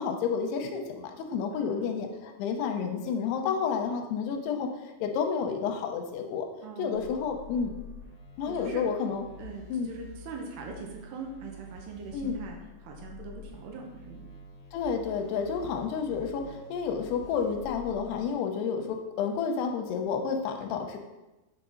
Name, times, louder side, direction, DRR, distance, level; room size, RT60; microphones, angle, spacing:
voice 1, 0.0-6.5 6.8-7.7 8.4-9.3 9.7-9.9 12.1-12.4 14.7-21.0, left 6 dB, 85° left, 5 dB, 2.9 m, -30 dB
voice 2, 1.5-2.0 6.6-7.1 8.5-8.8 9.4-14.2, right 5 dB, 85° right, 1 dB, 3.0 m, -42 dB
sound 1, 6.9-18.3, left 4 dB, 55° left, 0.9 m, -48 dB
8.4 x 5.9 x 3.8 m, 1.1 s
omnidirectional pair, 4.6 m